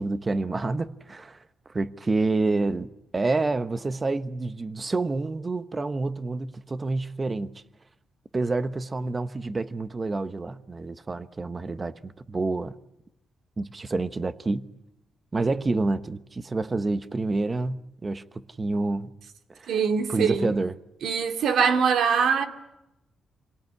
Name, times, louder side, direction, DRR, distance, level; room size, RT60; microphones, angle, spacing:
voice 1, 0.0-1.4 1.7-7.5 8.3-12.8 13.6-14.7 15.3-19.1 19.6-19.7 20.1-20.7, right 3 dB, 25° right, 1.1 m, -28 dB
voice 2, 19.7-20.5 21.0-22.4, right 6 dB, 70° right, 2.6 m, -23 dB
27.0 x 18.0 x 9.8 m
cardioid pair, 130°, 0 cm